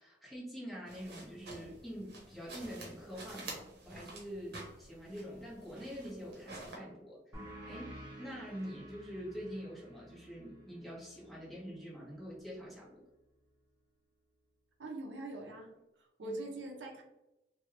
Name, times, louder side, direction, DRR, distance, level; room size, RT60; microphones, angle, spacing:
voice 1, 0.0-13.0 16.2-16.4, equal, ahead, -7 dB, 1.2 m, -45 dB
sound 1, 0.9-6.8, right 2 dB, 60° right, 1.0 m, -49 dB
sound 2, 7.3-12.5, right 1 dB, 15° right, 1.1 m, -52 dB
voice 2, 14.8-15.7 16.0-17.0, right 2 dB, 90° right, 2 dB, 0.6 m, -43 dB
3.1 x 2.3 x 3.1 m, 0.91 s
head